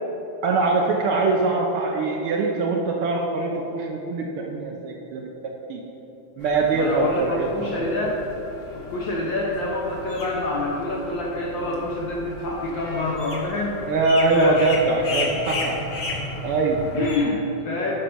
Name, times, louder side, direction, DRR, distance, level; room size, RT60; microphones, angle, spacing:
voice 1, 0.4-5.8 6.4-7.7 13.9-15.8 16.4-16.8, right 3 dB, 90° right, 0 dB, 1.2 m, -23 dB
sound 1, 6.4-17.2, left 2 dB, 55° left, 0.8 m, -35 dB
voice 2, 6.7-8.2 8.7-13.8 14.3-14.6 16.9-17.9, left 2 dB, 90° left, -3 dB, 1.0 m, -27 dB
9.7 x 5.2 x 6.0 m, 3.0 s
omnidirectional pair, 3.3 m